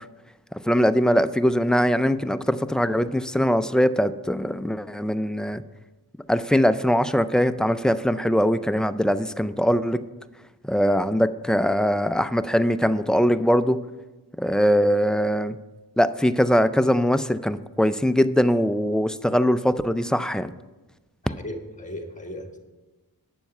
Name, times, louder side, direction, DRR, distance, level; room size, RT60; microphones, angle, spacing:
voice 1, 0.6-5.6 6.3-10.0 10.6-13.8 14.4-15.6 16.0-20.5, equal, ahead, 12 dB, 0.4 m, -21 dB
voice 2, 21.2-22.6, left 1 dB, 20° left, 4 dB, 1.6 m, -36 dB
9.2 x 7.0 x 5.4 m, 1.2 s
cardioid pair, 45°, 40 cm